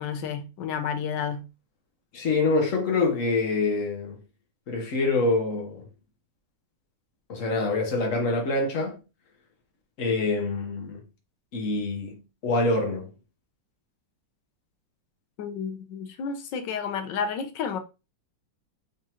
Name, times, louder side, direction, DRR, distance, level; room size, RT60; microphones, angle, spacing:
voice 1, 0.0-1.5 15.4-17.8, left 6 dB, 80° left, 1.5 m, -31 dB
voice 2, 2.1-4.2 4.7-5.9 7.3-9.0 10.0-11.0 11.5-13.1, left 3 dB, 50° left, 1.4 m, -26 dB
4.0 x 3.6 x 2.9 m
omnidirectional pair, 2.0 m